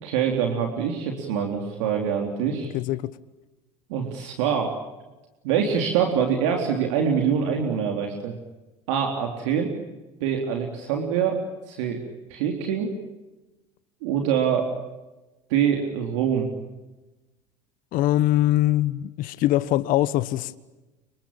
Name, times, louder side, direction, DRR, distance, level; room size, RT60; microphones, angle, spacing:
voice 1, 0.0-2.7 3.9-4.8 5.4-8.3 8.9-9.7 10.2-11.4 11.7-12.0 12.3-12.9 14.0-14.7 15.5-16.5, right 7 dB, 80° right, 3.6 m, -24 dB
voice 2, 2.7-3.1 17.9-20.6, left 14 dB, 65° left, 1.3 m, -22 dB
27.5 x 24.5 x 8.8 m
hypercardioid pair, 80°, 15 cm